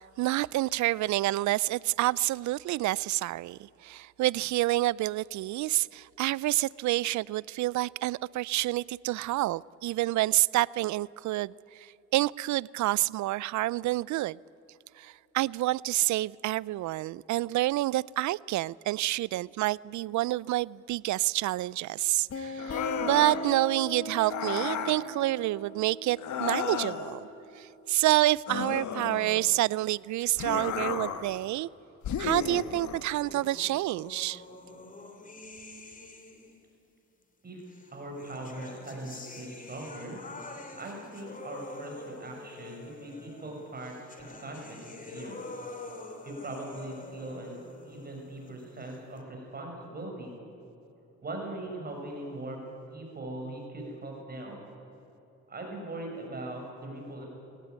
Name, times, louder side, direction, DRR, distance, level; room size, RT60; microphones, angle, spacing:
voice 1, 0.0-14.4 15.0-27.2 27.6-31.7 32.2-34.4, right 16 dB, 70° right, 0.4 m, -28 dB
sound 1, 22.3-27.7, left 1 dB, 50° left, 1.9 m, -39 dB
sound 2, 22.6-23.5 24.2-25.0 26.2-27.2 28.5-29.6 30.4-31.3 32.0-33.1, left 8 dB, 70° left, 1.6 m, -34 dB
sound 3, 33.2-36.7 37.7-49.2, left 2 dB, 25° left, 3.0 m, -46 dB
voice 2, 37.9-40.2 40.7-45.4 46.2-50.3 51.2-52.6 52.9-54.6 55.5-57.3, right 1 dB, 30° right, 6.6 m, -40 dB
20.5 x 17.0 x 9.5 m
cardioid pair, 90°, 30 cm